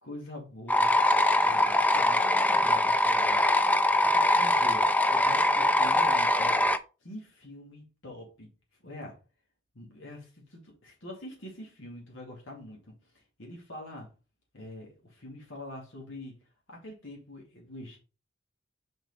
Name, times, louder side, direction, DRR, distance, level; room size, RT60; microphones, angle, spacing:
voice 1, 0.0-1.0 1.4-3.5 4.0-6.6 7.0-8.5 8.8-9.2 9.7-14.1 14.5-16.3 16.7-18.0, left 1 dB, 80° left, 2.2 m, -44 dB
sound 1, 0.7-6.8, left 1 dB, 10° left, 0.3 m, -23 dB
5.3 x 4.5 x 4.1 m
head